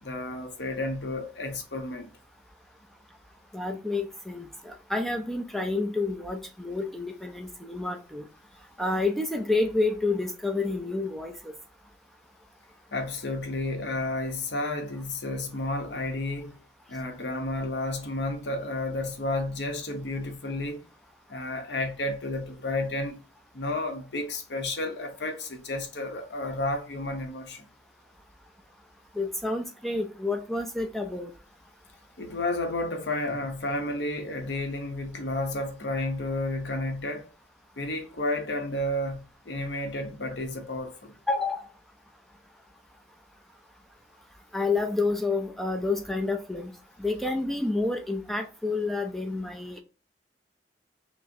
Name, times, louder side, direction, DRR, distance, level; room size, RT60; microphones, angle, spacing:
voice 1, 0.0-2.1 12.9-16.6 16.9-20.9 21.3-23.2 23.5-27.6 32.2-37.3 37.8-41.1, left 2 dB, 80° left, 0.8 m, -31 dB
voice 2, 3.5-8.3 8.8-11.5 29.2-31.3 41.3-41.6 44.5-46.7 47.0-49.8, left 3 dB, ahead, 0.3 m, -29 dB
5.9 x 2.0 x 2.6 m
head